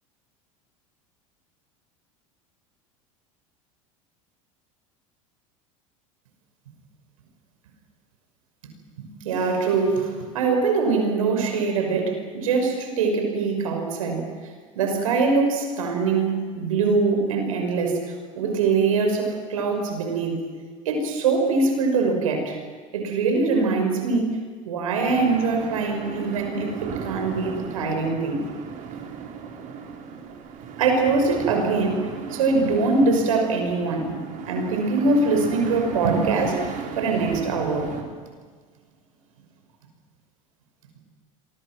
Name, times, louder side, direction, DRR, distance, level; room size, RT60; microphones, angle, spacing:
voice 1, 9.0-20.4 20.8-22.6 22.9-24.3 24.6-28.4 30.8-34.2 34.5-36.6 37.0-37.9, right 4 dB, 85° right, 4 dB, 6.0 m, -23 dB
sound 1, 25.0-38.0, right 6 dB, 50° right, 4.5 m, -36 dB
28.0 x 24.0 x 6.2 m, 1.5 s
hypercardioid pair, 90°, 17 cm